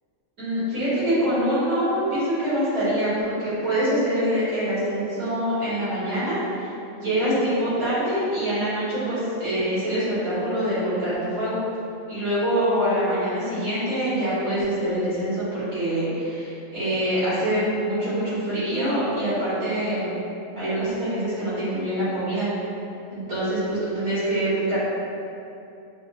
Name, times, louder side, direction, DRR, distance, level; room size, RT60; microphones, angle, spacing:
voice 1, 0.4-11.6 12.1-20.1 20.6-22.5 23.1-24.8, right 1 dB, 80° right, -13 dB, 2.0 m, -25 dB
6.1 x 2.1 x 2.3 m, 2.7 s
omnidirectional pair, 1.5 m